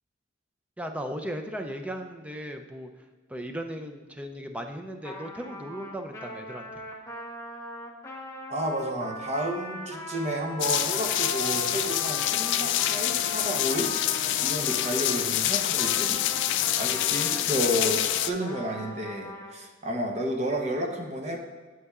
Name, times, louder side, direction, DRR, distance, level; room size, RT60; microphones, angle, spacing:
voice 1, 0.8-2.9 3.3-6.9, equal, 5° right, 5 dB, 0.5 m, -37 dB
Trumpet, 5.0-15.2 15.7-19.5, equal, 15° left, 1.0 m, -40 dB
voice 2, 8.5-16.2 16.8-21.4, equal, 35° right, 2 dB, 0.9 m, -31 dB
sound 1, 10.6-18.3, left 12 dB, 65° left, 0.3 m, -26 dB
8.2 x 7.9 x 2.4 m, 1.3 s
head